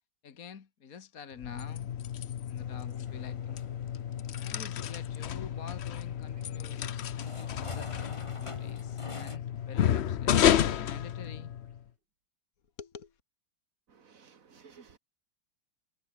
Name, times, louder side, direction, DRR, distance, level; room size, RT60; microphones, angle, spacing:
voice 1, 0.2-1.9 2.5-3.6 4.4-7.9 8.4-11.5 12.8-13.2, left 6 dB, 50° left, 1.8 m, -47 dB
sound 1, 1.3-11.8, left 10 dB, 70° left, 0.6 m, -31 dB
sound 2, 2.6-9.4, left 3 dB, 20° left, 1.1 m, -47 dB
sound 3, 5.6-11.9, right 2 dB, 65° right, 7.6 m, -61 dB
voice 2, 14.0-15.0, right 6 dB, 45° right, 2.0 m, -55 dB
omnidirectional pair, 2.1 m